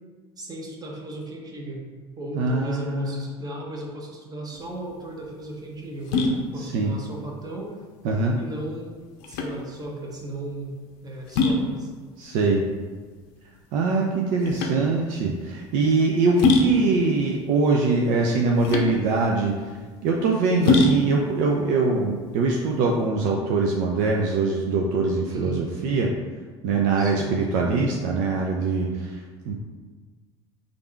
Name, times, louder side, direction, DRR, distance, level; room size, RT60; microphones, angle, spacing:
voice 1, 0.4-1.8 2.2-7.8 8.4-9.0 9.3-11.9 20.5-20.9 25.3-25.7 27.0-27.4, right 1 dB, 25° right, -1 dB, 1.0 m, -36 dB
voice 2, 2.4-3.3 6.7-6.9 8.0-8.4 12.2-12.6 13.7-19.5 20.0-26.1 26.6-29.5, right 3 dB, 60° right, 0 dB, 0.5 m, -23 dB
sound 1, 4.5-23.1, left 3 dB, 65° left, 0.6 m, -27 dB
3.4 x 2.5 x 4.4 m, 1.4 s
hypercardioid pair, 70°, 14 cm